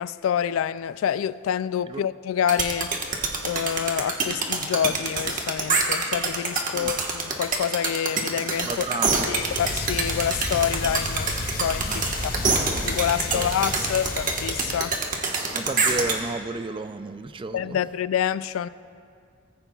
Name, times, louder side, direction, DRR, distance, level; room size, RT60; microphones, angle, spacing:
voice 1, 0.0-2.9 3.4-8.7 9.3-11.3 11.6-12.3 12.9-15.0 17.5-18.7, left 9 dB, 75° left, 17 dB, 0.3 m, -27 dB
sound 1, 2.5-16.2, right 4 dB, 40° right, 1.3 m, -25 dB
voice 2, 8.7-9.3 11.8-12.0 12.3-12.5 13.3-13.5 15.5-17.8, right 3 dB, 25° right, 11 dB, 0.4 m, -32 dB
sound 2, 9.3-15.2, left 2 dB, 45° left, 1.0 m, -32 dB
18.5 x 15.0 x 2.4 m, 2.3 s
head